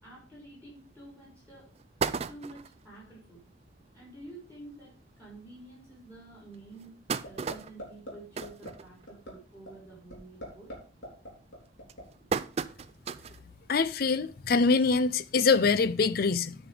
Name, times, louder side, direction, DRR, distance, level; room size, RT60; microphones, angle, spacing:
voice 1, 0.0-1.7 2.3-3.4 3.9-6.9 7.2-10.7, right 2 dB, 10° left, 4.2 m, -49 dB
sound 1, 0.9-1.0 1.4-1.5 1.8-2.8 3.4-3.5 3.8-3.9 4.2-4.4 5.1-5.2 5.7-5.8 6.5-9.4 9.7-10.1 10.4-10.8 11.4-13.5 13.9-14.0 15.2-15.3, right 5 dB, 30° right, 0.3 m, -35 dB
sound 2, 7.2-7.5 7.8-8.1 8.4-8.7 9.1-9.3 9.7-9.8 10.1-10.8 11.0-12.0, equal, 65° left, 3.6 m, -40 dB
voice 2, 13.7-16.6, left 4 dB, 45° left, 0.4 m, -24 dB
9.4 x 5.1 x 5.1 m
head